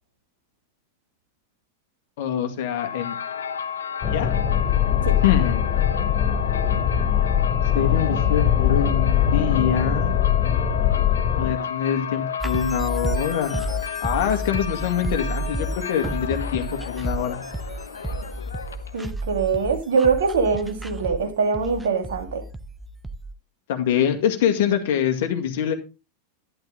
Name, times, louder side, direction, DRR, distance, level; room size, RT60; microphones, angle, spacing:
voice 1, 2.2-3.2 4.1-4.3 5.2-5.7 7.7-10.2 11.4-17.4 23.7-25.7, left 9 dB, 60° left, 6 dB, 2.1 m, -24 dB
sound 1, 2.7-19.1, left 8 dB, 75° left, 1.0 m, -32 dB
sound 2, 4.0-11.5, left 9 dB, 35° left, 3.9 m, -21 dB
sound 3, 12.4-23.3, right 1 dB, 5° right, 1.1 m, -31 dB
voice 2, 18.9-22.4, right 5 dB, 65° right, 5 dB, 2.9 m, -23 dB
12.0 x 11.0 x 3.7 m, 0.29 s
figure-of-eight pair, 90°, 0 cm